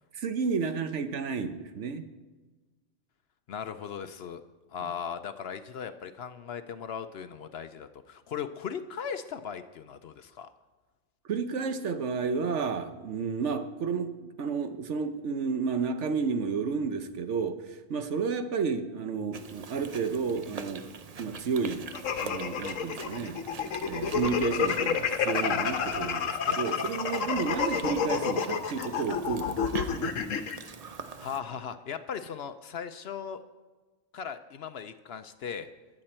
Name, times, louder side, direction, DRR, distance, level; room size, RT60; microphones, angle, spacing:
voice 1, 0.1-2.0 11.3-20.8 21.2-21.9 22.2-23.4 23.8-30.1, right 5 dB, 70° right, 9 dB, 1.1 m, -31 dB
voice 2, 3.5-4.4 4.7-10.5 30.9-33.4 34.1-35.7, left 7 dB, 60° left, 10 dB, 0.8 m, -38 dB
Chewing mastication, 19.3-31.4, right 5 dB, 40° right, 0.5 m, -44 dB
sound 1, 21.9-30.6, left 6 dB, 85° left, 1.2 m, -29 dB
21.0 x 7.7 x 4.4 m, 1.3 s
omnidirectional pair, 1.3 m